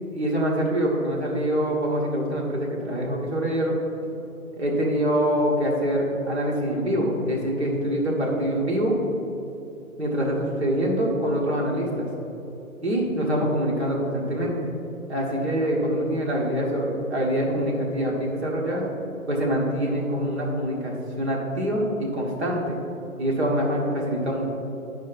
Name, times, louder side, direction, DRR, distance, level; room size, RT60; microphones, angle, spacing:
voice 1, 0.1-3.7 4.6-8.9 10.0-12.2 12.8-14.7 15.1-18.9 19.3-22.8 23.2-24.5, equal, 50° right, -3 dB, 1.6 m, -25 dB
9.5 x 5.3 x 4.1 m, 3.0 s
figure-of-eight pair, 140°, 43 cm